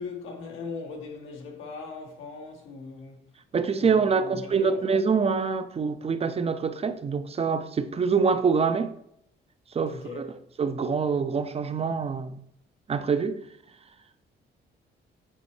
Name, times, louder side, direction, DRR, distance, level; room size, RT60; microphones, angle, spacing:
voice 1, 0.0-3.2 3.8-4.8 9.8-10.3, left 4 dB, 85° left, 1.3 m, -39 dB
voice 2, 3.5-8.9 9.7-10.3 10.6-12.4 12.9-13.4, right 5 dB, 30° right, 0.5 m, -25 dB
7.7 x 4.1 x 3.2 m
cardioid pair, 90°, 20 cm